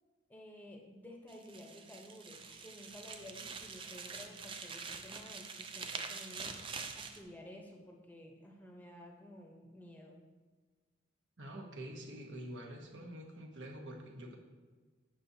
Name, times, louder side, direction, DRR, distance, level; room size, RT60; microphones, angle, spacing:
voice 1, 0.3-6.6 6.9-10.2, left 1 dB, 10° left, 0 dB, 0.8 m, -53 dB
sound 1, 1.3-7.2, right 5 dB, 25° right, 0.4 m, -45 dB
voice 2, 11.4-14.3, right 1 dB, 70° right, 1 dB, 1.1 m, -46 dB
7.5 x 7.1 x 2.7 m, 1.4 s
head